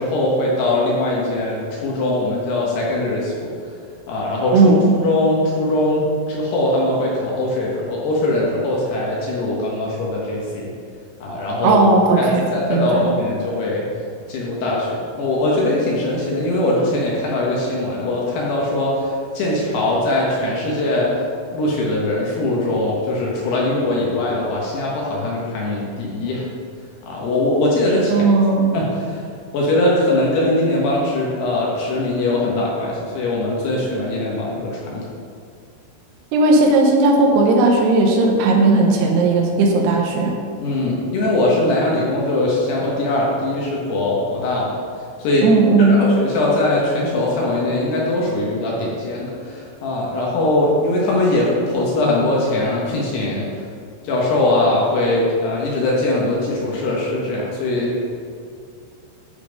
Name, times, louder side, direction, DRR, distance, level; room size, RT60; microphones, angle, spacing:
voice 1, 0.0-3.5 4.1-4.7 5.0-10.7 11.2-11.8 12.2-13.9 14.3-21.1 21.5-26.5 27.1-28.3 28.7-29.2 29.5-35.0 40.6-44.8 45.2-45.5 45.8-53.4 54.0-58.0, left 2 dB, 70° left, -4 dB, 2.9 m, -21 dB
voice 2, 4.5-4.9 11.6-12.4 12.7-13.0 28.1-28.7 36.3-40.3 45.4-46.0, right 3 dB, 75° right, 0 dB, 2.5 m, -15 dB
12.0 x 4.2 x 5.1 m, 2.3 s
omnidirectional pair, 5.8 m